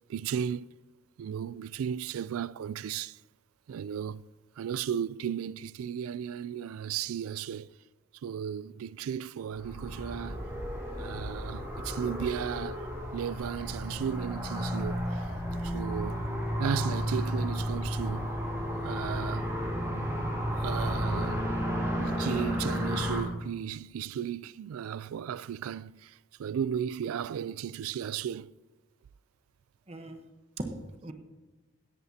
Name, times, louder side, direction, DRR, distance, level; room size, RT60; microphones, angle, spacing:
voice 1, 0.1-0.7 1.2-3.2 3.7-4.2 4.6-7.7 8.2-10.5 11.0-12.8 13.1-15.2 15.6-16.2 16.6-18.3 18.8-19.5 20.6-21.4 22.0-26.1 26.4-28.5, right 8 dB, 85° right, 0.3 m, -35 dB
sound 1, 9.5-23.2, equal, 15° right, 2.4 m, -32 dB
voice 2, 29.9-30.2 30.6-31.1, right 1 dB, 30° right, 1.0 m, -40 dB
16.5 x 10.5 x 2.8 m
head